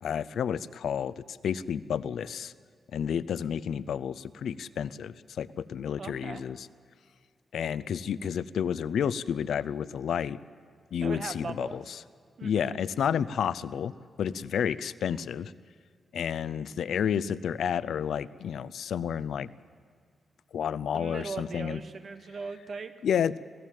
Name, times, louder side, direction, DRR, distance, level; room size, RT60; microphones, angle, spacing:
voice 1, 0.0-2.5 2.9-6.7 7.5-10.4 10.9-12.0 12.4-13.9 14.2-15.5 16.1-19.5 20.5-21.8 23.0-23.4, left 8 dB, 80° left, 17 dB, 0.5 m, -30 dB
voice 2, 6.0-6.4 11.0-11.8 12.4-12.7 20.9-22.9, right 4 dB, 45° right, 9 dB, 1.2 m, -39 dB
26.5 x 17.0 x 7.5 m, 2.1 s
wide cardioid pair, 170°, 0 cm